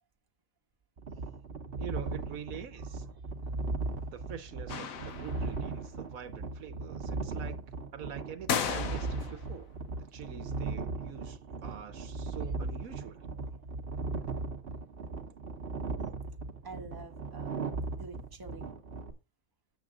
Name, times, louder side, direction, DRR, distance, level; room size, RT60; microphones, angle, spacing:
sound 1, 1.0-19.1, right 3 dB, 45° right, 1.3 m, -37 dB
voice 1, 1.8-3.0 4.1-7.6 7.9-9.8 10.1-13.3, right 8 dB, 75° right, 1.3 m, -45 dB
voice 2, 2.8-4.0 7.4-7.6 9.2-9.3 13.4-13.7 16.6-18.7, right 4 dB, 15° right, 1.1 m, -50 dB
sound 2, 4.7-5.7 8.5-9.5, left 7 dB, 70° left, 1.3 m, -34 dB
7.6 x 7.4 x 3.7 m
omnidirectional pair, 1.5 m